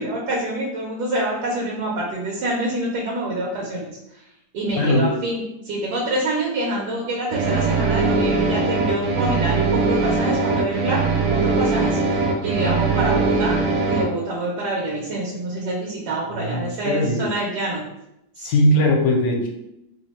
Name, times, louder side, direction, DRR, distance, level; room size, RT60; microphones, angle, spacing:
voice 1, 0.0-3.9 4.1-4.3 4.5-11.0 11.3-13.6 13.9-17.8 18.3-18.9, right 1 dB, 80° right, -3 dB, 1.3 m, -26 dB
voice 2, 4.8-5.1 16.3-17.2 18.4-19.5, left 1 dB, 70° left, 1 dB, 1.1 m, -20 dB
sound 1, 7.3-14.0, right 4 dB, 65° right, 0.8 m, -21 dB
3.0 x 2.1 x 4.0 m, 0.86 s
omnidirectional pair, 1.7 m